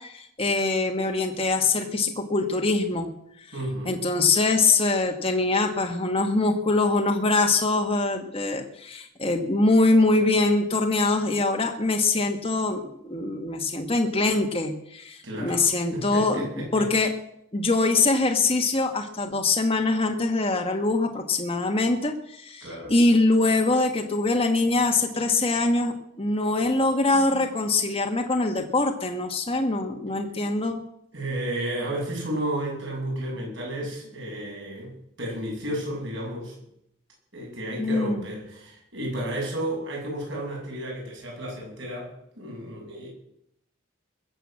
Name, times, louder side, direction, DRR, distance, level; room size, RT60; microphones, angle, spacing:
voice 1, 0.0-3.1 3.4-3.5 3.8-16.5 16.7-17.1 17.5-30.8 37.8-38.2, left 3 dB, 25° left, 3 dB, 1.3 m, -23 dB
voice 2, 3.5-3.9 15.2-16.9 22.6-22.9 31.1-34.9 35.2-36.5 37.3-43.1, right 1 dB, 55° right, -1 dB, 7.6 m, -32 dB
21.0 x 8.0 x 7.6 m, 0.75 s
head